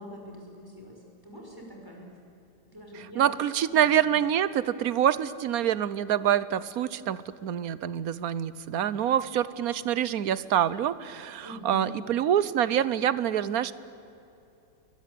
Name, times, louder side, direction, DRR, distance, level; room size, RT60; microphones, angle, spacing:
voice 1, 0.0-2.1 2.7-4.1 11.4-11.9, equal, 10° right, 0 dB, 5.9 m, -44 dB
voice 2, 3.2-13.7, right 10 dB, 60° right, 16 dB, 1.2 m, -26 dB
29.5 x 22.5 x 8.6 m, 2.8 s
omnidirectional pair, 2.0 m